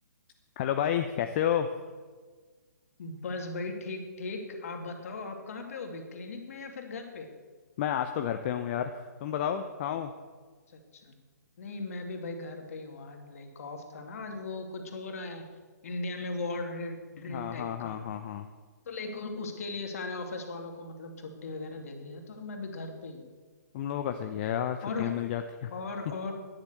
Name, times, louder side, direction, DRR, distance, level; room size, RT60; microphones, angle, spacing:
voice 1, 0.6-1.7 7.8-10.1 17.3-18.5 23.7-25.7, left 9 dB, 35° left, 7 dB, 0.8 m, -31 dB
voice 2, 3.0-7.3 10.7-11.1 11.6-15.5 15.8-18.0 18.9-23.2 24.8-25.1 25.7-26.3, left 3 dB, 55° left, 4 dB, 2.7 m, -38 dB
13.0 x 10.5 x 7.9 m, 1.4 s
figure-of-eight pair, 130°, 9 cm